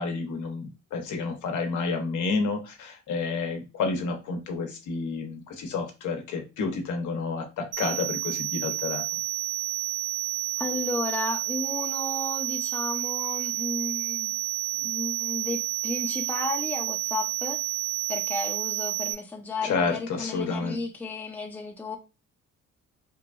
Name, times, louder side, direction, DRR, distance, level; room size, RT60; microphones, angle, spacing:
voice 1, 0.0-9.0 19.6-20.8, left 4 dB, 75° left, 0.8 m, -30 dB
sound 1, 7.7-19.1, right 15 dB, 55° right, 0.8 m, -30 dB
voice 2, 10.6-14.3 14.7-17.6 18.1-22.0, left 2 dB, 5° left, 0.5 m, -33 dB
2.9 x 2.2 x 2.4 m
cardioid pair, 90°, 30 cm